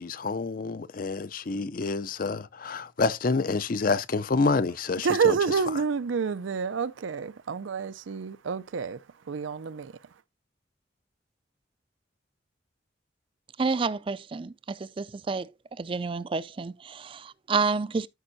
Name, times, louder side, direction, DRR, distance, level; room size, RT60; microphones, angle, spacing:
voice 1, 0.0-5.4, left 3 dB, 45° left, 0.5 m, -28 dB
voice 2, 5.0-9.0 9.3-9.9, right 5 dB, 90° right, 0.5 m, -28 dB
voice 3, 13.6-15.5 15.8-18.1, right 4 dB, 25° right, 0.3 m, -29 dB
13.0 x 5.3 x 2.7 m
head